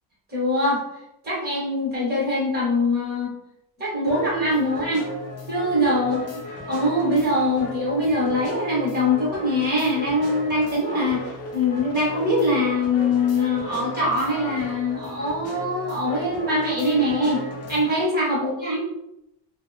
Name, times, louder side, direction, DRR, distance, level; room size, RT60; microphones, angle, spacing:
voice 1, 0.3-0.8 1.2-3.3 3.8-5.0 5.5-6.2 6.7-17.4 17.7-18.8, left 1 dB, 25° right, -6 dB, 1.1 m, -23 dB
sound 1, 4.1-18.1, left 1 dB, 35° left, 0.5 m, -36 dB
3.1 x 2.0 x 2.5 m, 0.85 s
cardioid pair, 170°, 42 cm